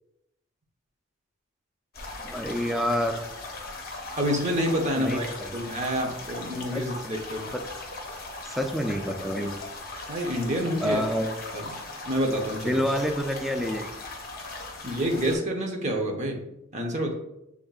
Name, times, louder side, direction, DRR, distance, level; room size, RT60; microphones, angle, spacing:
sound 1, 1.9-15.4, left 2 dB, 45° left, 0.7 m, -39 dB
voice 1, 2.2-3.2 5.0-5.2 6.7-6.8 7.5-7.6 8.5-9.6 10.8-11.3 12.6-14.0, equal, ahead, 4 dB, 0.3 m, -27 dB
voice 2, 4.2-7.5 10.1-11.0 11.5-11.6 12.0-12.8 14.8-16.4 16.7-17.1, equal, 35° right, 2 dB, 0.8 m, -28 dB
6.4 x 3.5 x 2.4 m, 0.86 s
head